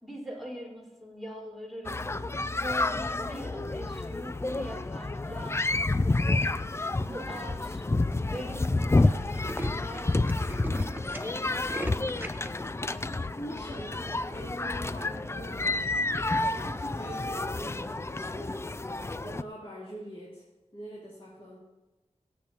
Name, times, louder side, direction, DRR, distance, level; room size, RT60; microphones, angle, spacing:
voice 1, 0.0-2.2 2.6-6.5 7.0-7.8 8.3-10.4, equal, ahead, -3 dB, 4.3 m, -42 dB
sound 1, 1.8-19.4, left 2 dB, 20° left, 0.4 m, -29 dB
Tools, 6.4-6.8 7.4-7.5 7.8-7.9 8.1-8.3 8.6-8.7 9.0-12.5, right 1 dB, 15° right, 1.0 m, -40 dB
voice 2, 13.3-16.1 16.5-20.4 20.7-21.6, equal, 50° left, -8 dB, 3.4 m, -43 dB
23.0 x 8.5 x 2.9 m, 1.1 s
wide cardioid pair, 70°, 12 cm